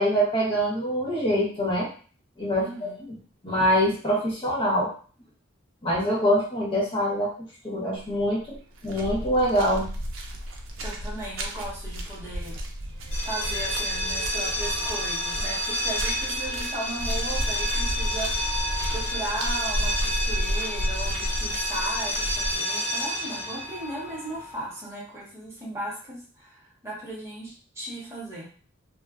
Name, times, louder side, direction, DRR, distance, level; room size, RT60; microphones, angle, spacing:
voice 1, 0.0-1.9 2.4-2.9 3.4-4.9 5.8-7.3 7.6-8.6 8.8-9.9, equal, 25° left, -5 dB, 0.7 m, -24 dB
voice 2, 2.5-3.1 10.8-12.6 13.2-28.5, right 1 dB, 15° right, -6 dB, 0.9 m, -36 dB
sound 1, 8.0-8.2 8.5-22.6, equal, 70° right, 0.4 m, -32 dB
sound 2, 13.0-24.7, equal, 75° left, 0.7 m, -30 dB
2.4 x 2.1 x 2.3 m, 0.42 s
head